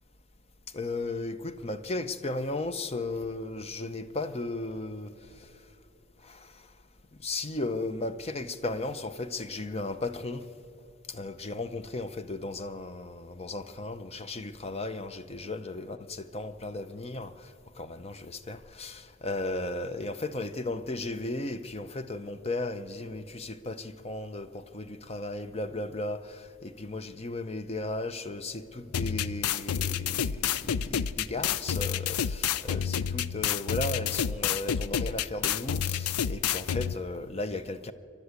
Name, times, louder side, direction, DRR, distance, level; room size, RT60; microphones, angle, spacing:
voice 1, 0.7-5.5 6.2-6.7 7.2-10.5 11.1-37.9, left 2 dB, 25° left, 11 dB, 0.7 m, -35 dB
sound 1, 28.9-36.9, left 8 dB, 90° left, 0.5 m, -29 dB
27.5 x 12.0 x 8.2 m, 2.8 s
head